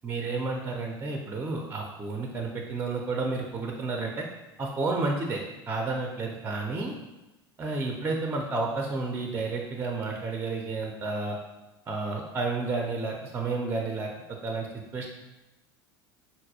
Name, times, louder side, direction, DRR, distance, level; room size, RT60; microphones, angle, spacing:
voice 1, 0.0-4.3 4.6-7.0 7.6-11.4 11.9-14.7 14.9-15.1, right 3 dB, 15° right, 1 dB, 0.4 m, -31 dB
4.0 x 2.3 x 2.6 m, 1.0 s
figure-of-eight pair, 75°, 13 cm